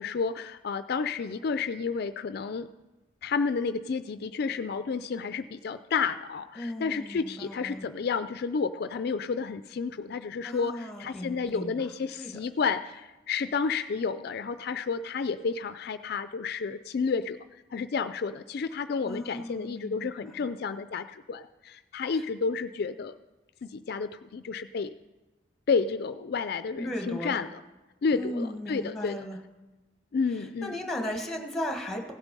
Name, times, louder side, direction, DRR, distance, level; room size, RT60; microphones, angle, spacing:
voice 1, 0.0-2.7 3.2-17.4 17.7-23.1 23.6-24.9 25.7-27.6 28.0-29.2 30.1-30.7, left 5 dB, 55° left, 11 dB, 0.4 m, -31 dB
voice 2, 6.5-7.9 10.4-11.8 12.2-12.4 19.0-20.4 22.1-22.2 26.8-27.4 28.1-29.4 30.3-32.1, left 1 dB, 5° left, 3 dB, 1.5 m, -36 dB
16.0 x 8.1 x 5.3 m, 1.1 s
head